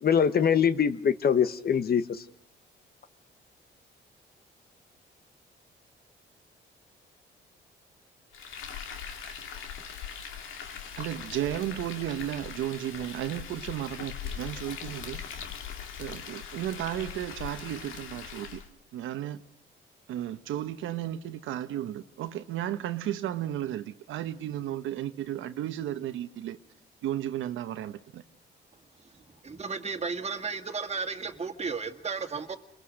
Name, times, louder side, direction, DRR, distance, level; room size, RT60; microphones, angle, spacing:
voice 1, 0.0-2.0, left 7 dB, 50° left, 1.2 m, -23 dB
Frying (food), 8.3-18.7, left 7 dB, 85° left, 2.3 m, -41 dB
voice 2, 11.0-15.2 16.0-18.6 18.9-19.4 20.1-26.6 27.0-28.2, right 12 dB, 85° right, 1.1 m, -34 dB
voice 3, 29.1-32.6, right 5 dB, 35° right, 2.0 m, -34 dB
29.5 x 22.0 x 6.5 m
cardioid pair, 90°, 20 cm